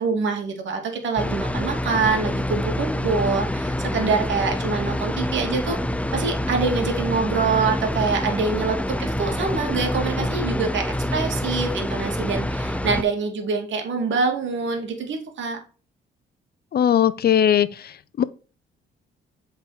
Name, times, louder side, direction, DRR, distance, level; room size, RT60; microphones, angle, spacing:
voice 1, 0.0-15.6, right 4 dB, 70° right, 2.6 m, -25 dB
sound 1, 1.2-13.0, left 1 dB, 5° left, 0.6 m, -26 dB
voice 2, 16.7-18.2, left 9 dB, 50° left, 0.7 m, -20 dB
8.2 x 4.8 x 5.0 m
cardioid pair, 90°, 20 cm